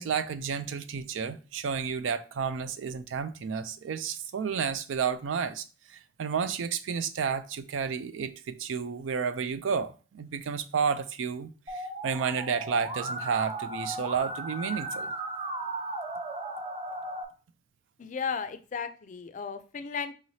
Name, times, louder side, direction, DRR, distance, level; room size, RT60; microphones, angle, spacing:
voice 1, 0.0-15.1, right 6 dB, 90° right, 0.4 m, -31 dB
Musical instrument, 11.7-17.2, right 2 dB, 30° right, 0.5 m, -36 dB
voice 2, 18.0-20.1, left 6 dB, 40° left, 0.3 m, -35 dB
4.8 x 3.1 x 2.7 m
head